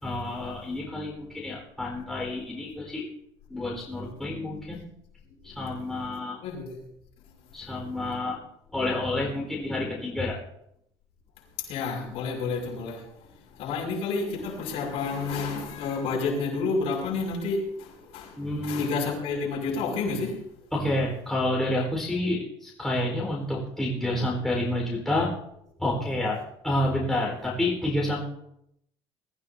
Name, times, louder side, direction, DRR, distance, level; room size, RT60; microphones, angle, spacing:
voice 1, 0.0-3.0 3.5-4.8 5.4-6.4 7.5-8.4 8.7-10.4 18.4-18.9 20.7-25.3 25.8-26.4 26.6-28.2, left 1 dB, 5° left, 4.3 m, -29 dB
voice 2, 6.4-6.8 7.2-7.3 11.7-20.4, left 4 dB, 70° left, 6.0 m, -30 dB
23.0 x 14.0 x 2.8 m
cardioid pair, 155°, 11 cm